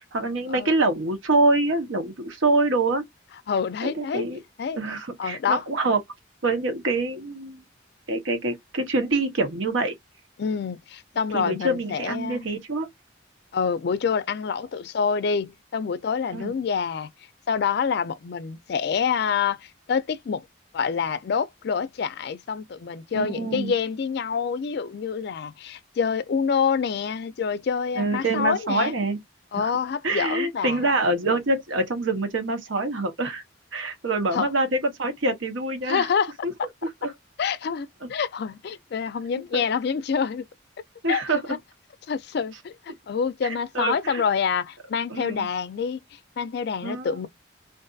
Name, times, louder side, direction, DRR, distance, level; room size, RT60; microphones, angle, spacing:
voice 1, 0.1-3.0 3.8-4.4 4.8-6.0 6.4-7.6 8.1-9.9 11.3-12.9 16.3-16.5 23.1-23.7 28.0-29.2 29.6-29.7 30.0-33.4 33.7-36.1 36.4-36.5 37.0-37.1 38.0-38.1 39.5-39.6 41.0-41.6 43.4-44.2 45.1-45.5 46.8-47.3, right 2 dB, 90° right, 0.9 m, -25 dB
voice 2, 3.5-4.3 4.6-4.8 5.2-5.6 10.4-12.5 13.5-17.1 17.5-20.4 20.7-28.9 29.5-30.8 34.3-34.5 35.8-36.3 36.6-36.7 37.4-40.5 41.1-41.6 42.1-47.3, left 6 dB, 55° left, 0.3 m, -27 dB
2.5 x 2.5 x 2.3 m
head